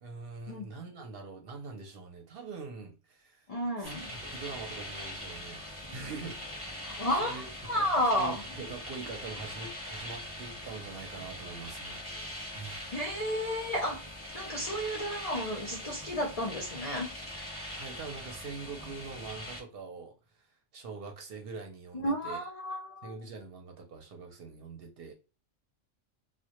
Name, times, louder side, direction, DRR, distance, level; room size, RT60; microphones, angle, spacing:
voice 1, 0.0-3.5 3.8-6.8 7.2-7.9 8.1-12.9 17.7-20.4 20.7-22.4 23.0-25.1, right 4 dB, 60° right, 0.7 m, -44 dB
voice 2, 3.5-4.1 6.8-8.4 12.9-14.0 14.3-17.1 21.9-23.2, equal, 55° left, 0.4 m, -32 dB
sound 1, 3.8-19.6, left 1 dB, 15° left, 0.8 m, -42 dB
2.1 x 2.1 x 2.8 m
omnidirectional pair, 1.2 m